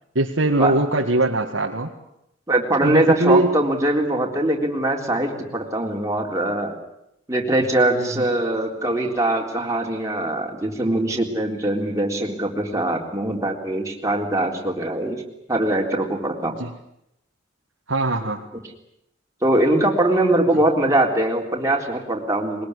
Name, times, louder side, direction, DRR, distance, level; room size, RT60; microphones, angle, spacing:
voice 1, 0.2-1.9 2.8-3.6 8.0-8.3 16.6-16.7 17.9-18.4, right 2 dB, 80° right, -1 dB, 1.9 m, -21 dB
voice 2, 2.5-6.7 7.3-15.2 15.5-16.5 19.4-22.7, right 1 dB, 15° right, 0 dB, 3.8 m, -22 dB
21.5 x 20.5 x 9.9 m, 0.79 s
head